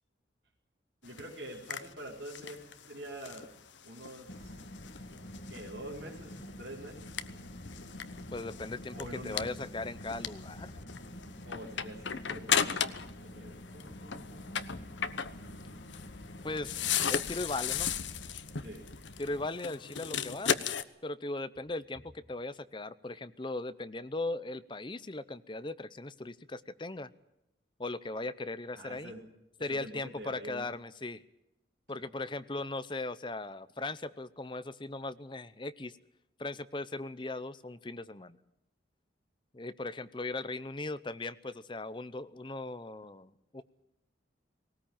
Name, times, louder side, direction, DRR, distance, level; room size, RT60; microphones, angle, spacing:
sound 1, 1.0-13.2 13.5-20.8, left 8 dB, 85° left, 1.0 m, -36 dB
voice 1, 1.0-3.6 3.8-4.6 5.5-7.1 8.9-9.5 11.4-14.4 18.6-18.9 28.7-29.2 29.6-30.7 32.0-32.2, right 1 dB, 65° right, -7 dB, 4.3 m, -46 dB
Car, 4.3-19.5, equal, 65° left, 2.2 m, -47 dB
voice 2, 8.3-10.7 16.4-16.8 17.1-17.9 19.2-20.6 21.0-27.1 27.8-29.1 29.6-31.2 31.9-35.9 36.4-38.4 39.5-43.6, left 2 dB, 25° left, 13 dB, 0.7 m, -38 dB
19.0 x 18.5 x 8.9 m, 0.86 s
head